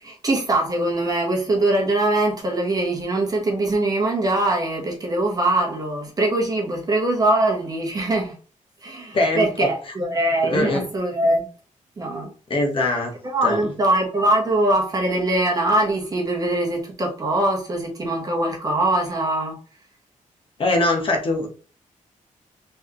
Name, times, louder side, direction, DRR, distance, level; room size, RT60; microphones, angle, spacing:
voice 1, 0.0-8.3 8.8-11.5 12.0-12.3 13.2-19.6, right 1 dB, 25° right, 1.2 m, -22 dB
voice 2, 9.1-9.7 10.4-10.8 12.5-13.6 20.6-21.5, left 2 dB, 40° left, 1.1 m, -22 dB
4.2 x 3.6 x 3.1 m
wide cardioid pair, 170°, 14 cm